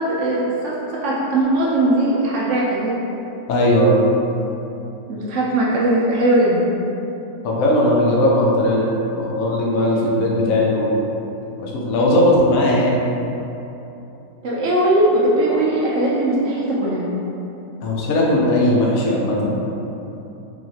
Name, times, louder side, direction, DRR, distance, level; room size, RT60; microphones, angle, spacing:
voice 1, 0.0-3.0 5.1-6.7 14.4-17.1, right 1 dB, 70° right, -6 dB, 0.7 m, -19 dB
voice 2, 3.5-4.0 7.4-8.9 9.1-10.9 11.6-13.0 17.8-19.6, left 1 dB, 60° left, -4 dB, 0.9 m, -18 dB
4.6 x 3.1 x 2.8 m, 2.9 s
omnidirectional pair, 2.0 m